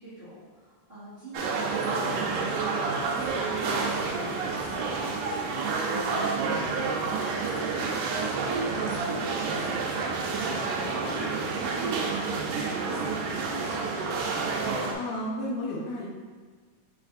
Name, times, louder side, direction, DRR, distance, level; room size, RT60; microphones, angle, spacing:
voice 1, 0.0-6.9 7.5-14.1, right 1 dB, 55° right, -13 dB, 0.6 m, -44 dB
sound 1, 1.3-14.9, right 4 dB, 85° right, 2.1 m, -29 dB
voice 2, 15.0-16.1, left 1 dB, 75° left, -2 dB, 2.0 m, -32 dB
5.9 x 3.3 x 2.5 m, 1.5 s
omnidirectional pair, 3.7 m